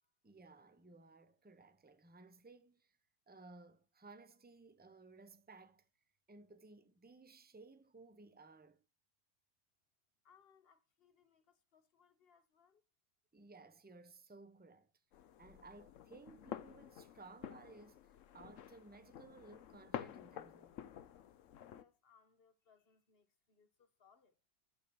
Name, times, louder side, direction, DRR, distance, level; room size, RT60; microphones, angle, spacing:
voice 1, 0.2-3.0 3.3-5.9 6.3-8.8 13.3-14.9 15.4-20.8, right 3 dB, 10° right, 0.6 m, -59 dB
voice 2, 10.2-12.8 21.6-24.4, left 6 dB, 45° left, 1.3 m, -70 dB
sound 1, 15.1-21.8, left 10 dB, 65° left, 1.0 m, -50 dB
12.5 x 4.9 x 6.9 m
omnidirectional pair, 1.6 m